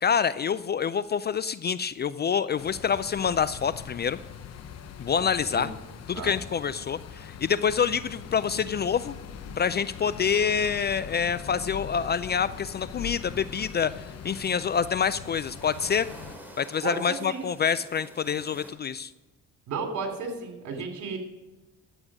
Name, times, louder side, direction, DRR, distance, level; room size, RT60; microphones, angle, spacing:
voice 1, 0.0-4.2 5.0-5.7 6.1-9.1 9.6-13.9 14.2-16.1 16.6-19.1, left 7 dB, 30° left, 16 dB, 0.4 m, -26 dB
sound 1, 2.6-16.4, left 7 dB, 50° left, 1.0 m, -43 dB
Idling, 8.1-14.2, left 7 dB, 75° left, 1.3 m, -43 dB
sound 2, 11.8-18.7, equal, 5° right, 2.6 m, -51 dB
voice 2, 16.8-17.5 19.7-21.2, right 4 dB, 60° right, 4 dB, 3.0 m, -33 dB
11.0 x 7.9 x 4.8 m, 1.1 s
supercardioid pair, 80°, 32 cm